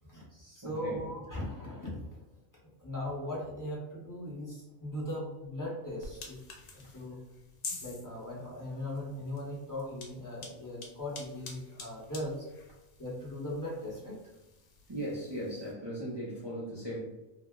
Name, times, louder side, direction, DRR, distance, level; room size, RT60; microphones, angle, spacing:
voice 1, 0.1-2.0 2.8-6.4 6.7-7.2 7.8-12.5 13.0-14.2, left 1 dB, 20° left, -6 dB, 0.7 m, -39 dB
voice 2, 0.6-1.1 6.8-6.9 14.9-17.0, equal, 45° right, -6 dB, 0.3 m, -38 dB
sound 1, 6.0-15.7, left 3 dB, 75° left, 1.0 m, -48 dB
2.6 x 2.0 x 3.5 m, 1.0 s
omnidirectional pair, 1.4 m